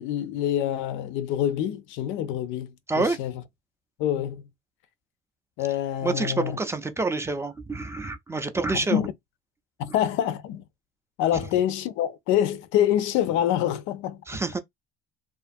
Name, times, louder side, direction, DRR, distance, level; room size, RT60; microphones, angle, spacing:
voice 1, 0.0-3.3 4.0-4.4 5.6-6.6 8.7-9.1 9.8-10.6 11.2-14.2, left 11 dB, 75° left, 0.4 m, -26 dB
voice 2, 6.0-9.0 14.3-14.6, right 3 dB, 15° right, 0.4 m, -27 dB
2.5 x 2.4 x 2.5 m
cardioid pair, 120°, 21 cm